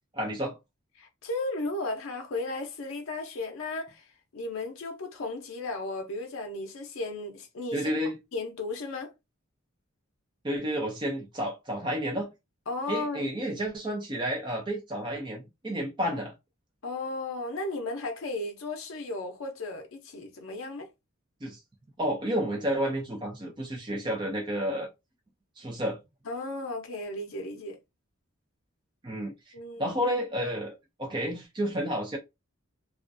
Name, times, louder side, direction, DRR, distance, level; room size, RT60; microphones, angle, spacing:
voice 1, 0.1-0.6 7.7-8.2 10.4-12.3 12.9-16.3 21.4-21.6 22.0-24.9 25.6-26.0 29.0-29.5 29.8-32.2, equal, 20° right, 0.4 m, -31 dB
voice 2, 1.0-7.9 8.3-9.1 12.7-13.3 16.8-20.9 26.3-27.8 29.5-30.0, left 2 dB, 70° left, 0.5 m, -35 dB
2.3 x 2.1 x 2.5 m
head